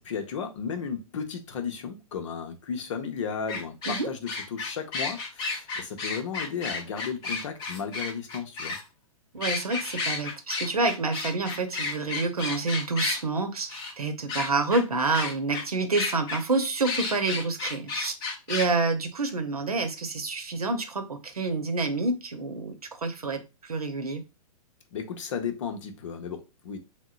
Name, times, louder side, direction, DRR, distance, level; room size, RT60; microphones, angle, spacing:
voice 1, 0.0-8.8 24.9-26.8, left 6 dB, 55° left, 0.7 m, -34 dB
sound 1, 3.5-8.8 9.4-13.2 13.7-13.9 14.3-14.8 15.1-15.6 15.9-16.4 16.8-18.7, left 3 dB, 25° left, 0.6 m, -32 dB
voice 2, 9.3-18.2 18.5-24.2, right 3 dB, 80° right, 0.7 m, -28 dB
3.6 x 2.1 x 2.3 m
figure-of-eight pair, 110°, 19 cm